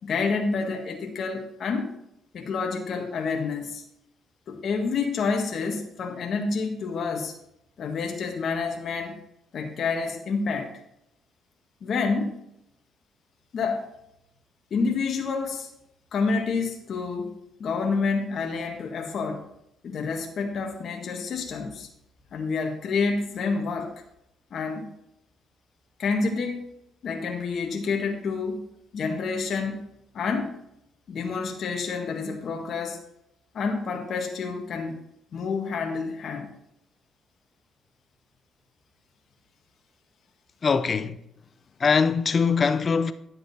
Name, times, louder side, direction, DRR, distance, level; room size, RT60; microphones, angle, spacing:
voice 1, 0.0-1.9 2.3-3.8 4.5-7.3 7.8-9.1 9.5-10.7 11.8-12.4 13.5-13.8 14.7-15.7 16.1-19.5 19.8-21.9 22.3-23.9 24.5-24.9 26.0-26.6 27.0-28.6 28.9-29.9 30.1-30.5 31.1-33.0 33.5-35.0 35.3-36.5, left 4 dB, 60° left, 1.6 m, -28 dB
voice 2, 40.6-41.1 41.8-43.1, left 5 dB, 40° left, 0.7 m, -22 dB
10.5 x 7.7 x 4.2 m
cardioid pair, 90°, 0 cm